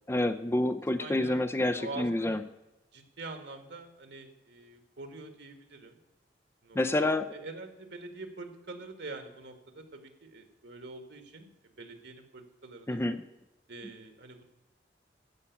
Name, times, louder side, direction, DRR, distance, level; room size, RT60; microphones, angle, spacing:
voice 1, 0.1-2.4 6.7-7.3 12.9-13.2, left 1 dB, 15° left, 9 dB, 0.5 m, -28 dB
voice 2, 1.0-1.4 1.8-2.4 2.9-6.0 6.6-13.0 13.7-14.5, right 3 dB, 70° right, 6 dB, 1.8 m, -45 dB
14.5 x 5.7 x 8.4 m, 1.0 s
head